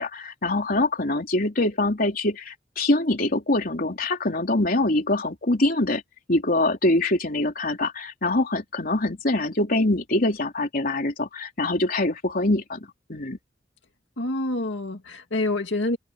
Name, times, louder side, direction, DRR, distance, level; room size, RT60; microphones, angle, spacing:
voice 1, 0.0-6.0 6.3-13.4, left 2 dB, 55° left, 3.5 m, -24 dB
voice 2, 14.2-16.0, left 2 dB, 85° left, 2.2 m, -27 dB
head